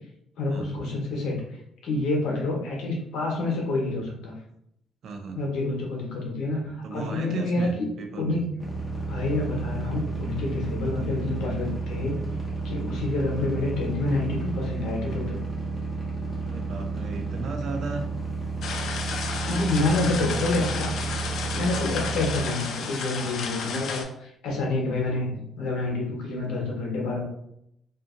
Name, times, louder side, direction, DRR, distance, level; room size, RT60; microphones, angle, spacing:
voice 1, 0.4-1.6 1.8-4.4 5.3-7.9 8.1-8.4 9.1-12.2 12.6-15.4 19.4-20.9 21.5-27.2, left 2 dB, 80° left, -1 dB, 0.9 m, -28 dB
voice 2, 5.0-5.4 6.8-8.4 12.8-12.9 16.4-18.0 19.5-20.5 23.5-23.9, right 4 dB, 55° right, 4 dB, 0.4 m, -36 dB
sound 1, 8.6-22.4, right 3 dB, ahead, 0.7 m, -31 dB
sound 2, 18.6-24.0, left 5 dB, 65° left, 0.4 m, -32 dB
2.6 x 2.5 x 2.5 m, 0.74 s
cardioid pair, 130°, 0 cm